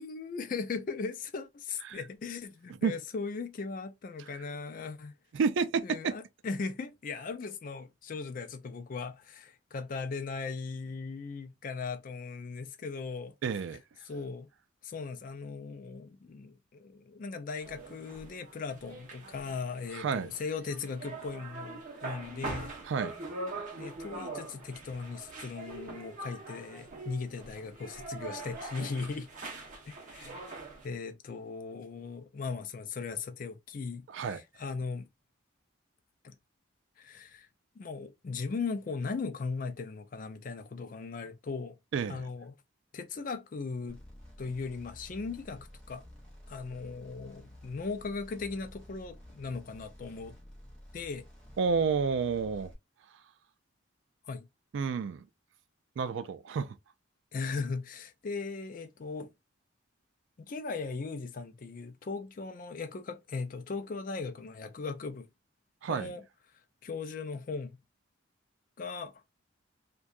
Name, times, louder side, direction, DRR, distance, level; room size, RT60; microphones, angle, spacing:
voice 1, 0.0-5.1 5.8-13.3 14.0-14.5 14.8-22.7 23.8-29.3 29.9-30.5 30.8-35.1 36.2-36.4 37.0-37.5 37.8-41.8 42.1-42.6 42.9-44.0 44.4-46.0 46.5-50.4 50.9-51.3 54.3-54.5 57.3-59.3 60.4-65.3 65.9-66.2 66.8-67.8 68.8-69.2, left 4 dB, 40° left, 0.3 m, -38 dB
voice 2, 5.3-6.1 13.4-13.8 19.9-20.3 22.9-23.1 34.1-34.4 41.9-42.2 51.6-52.7 54.7-55.2 56.0-56.8 65.8-66.1, right 5 dB, 70° right, 0.3 m, -30 dB
sound 1, 17.6-30.9, right 3 dB, 40° right, 0.8 m, -43 dB
sound 2, 43.9-52.7, left 1 dB, 5° left, 0.7 m, -52 dB
2.6 x 2.2 x 2.3 m
head